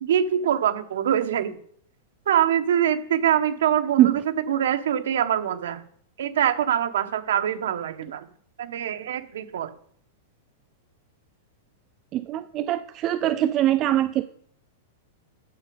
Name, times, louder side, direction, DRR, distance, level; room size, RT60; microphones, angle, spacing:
voice 1, 0.0-1.6 2.3-4.1 4.5-5.8 6.2-8.2 8.6-9.7, right 9 dB, 75° right, 8 dB, 1.1 m, -24 dB
voice 2, 12.1-14.2, right 13 dB, 25° right, 11 dB, 0.3 m, -22 dB
8.5 x 7.8 x 5.0 m, 0.62 s
supercardioid pair, 175°, 0 cm